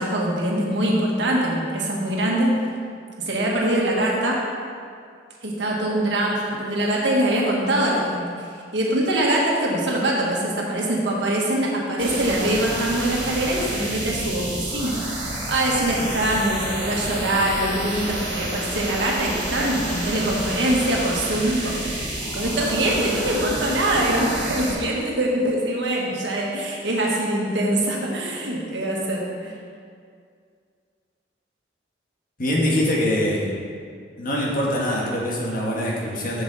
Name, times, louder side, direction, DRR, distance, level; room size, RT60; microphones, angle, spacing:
voice 1, 0.0-2.5 3.2-4.4 5.4-15.0 15.5-29.5, right 1 dB, 70° right, -3 dB, 1.5 m, -23 dB
sound 1, 12.0-24.7, right 1 dB, 30° right, 1.7 m, -29 dB
voice 2, 32.4-33.5 34.2-36.4, left 1 dB, 50° left, -3 dB, 1.4 m, -23 dB
7.4 x 7.1 x 4.0 m, 2.2 s
head